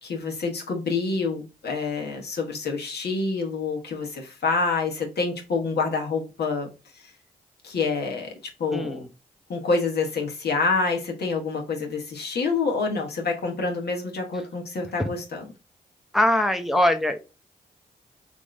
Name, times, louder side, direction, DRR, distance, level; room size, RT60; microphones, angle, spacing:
voice 1, 0.0-7.1 7.6-9.0 9.5-15.5, left 4 dB, 65° left, 1.1 m, -27 dB
voice 2, 8.7-9.1 16.1-17.2, left 1 dB, ahead, 0.7 m, -22 dB
3.5 x 2.6 x 3.2 m
supercardioid pair, 45°, 18 cm